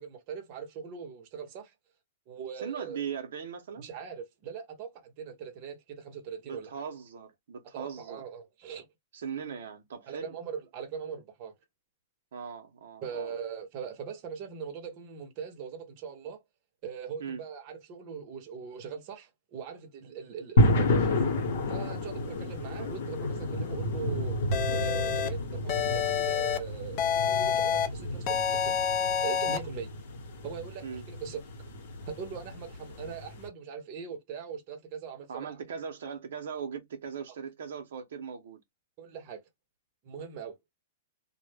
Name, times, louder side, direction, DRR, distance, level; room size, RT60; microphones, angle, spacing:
voice 1, 0.0-1.7 2.3-3.0 3.8-6.7 7.7-8.9 10.1-11.5 13.0-16.4 16.8-21.3 21.7-24.4 24.7-28.8 29.2-29.9 30.4-31.4 32.1-35.6 39.0-39.4 40.0-40.6, right 7 dB, 40° right, 0.7 m, -41 dB
voice 2, 2.6-3.9 6.4-8.2 9.1-10.3 12.3-13.3 17.2-17.4 22.5-22.6 30.8-31.1 35.3-38.6, right 7 dB, 75° right, 0.6 m, -39 dB
sound 1, 20.6-33.5, left 1 dB, 70° left, 0.9 m, -31 dB
sound 2, 24.5-25.3 25.7-26.6 27.0-27.9 28.3-29.6, left 8 dB, 35° left, 0.4 m, -28 dB
2.0 x 2.0 x 3.2 m
hypercardioid pair, 155°, 0 cm